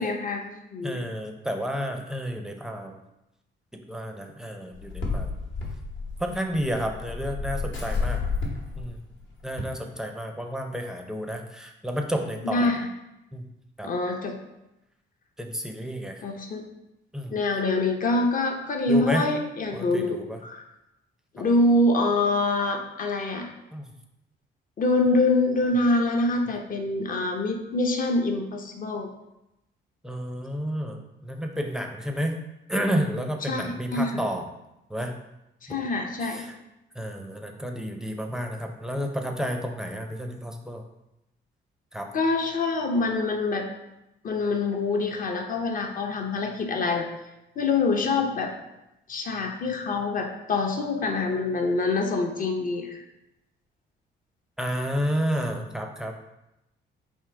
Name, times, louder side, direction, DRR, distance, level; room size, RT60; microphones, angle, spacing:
voice 1, 0.0-1.0 12.4-12.8 13.8-14.4 16.2-16.6 17.3-20.6 21.3-23.5 24.8-29.1 33.5-34.2 35.6-36.5 42.1-43.7 44.2-47.1 47.6-48.5 49.1-53.0, left 2 dB, 45° left, 3 dB, 0.7 m, -25 dB
voice 2, 0.8-3.0 3.9-5.3 6.2-8.2 8.8-9.0 9.4-12.8 13.3-13.4 13.8-13.9 15.4-16.2 17.1-17.4 18.9-19.3 19.7-20.4 21.4-21.5 23.7-23.9 30.0-32.4 32.7-34.5 34.9-35.1 36.2-36.5 36.9-40.8 41.9-42.1 54.6-56.1, equal, 5° right, 3 dB, 0.5 m, -31 dB
sound 1, 4.7-9.6, left 4 dB, 65° left, 1.1 m, -31 dB
3.7 x 2.7 x 4.5 m, 0.91 s
cardioid pair, 90°, 20 cm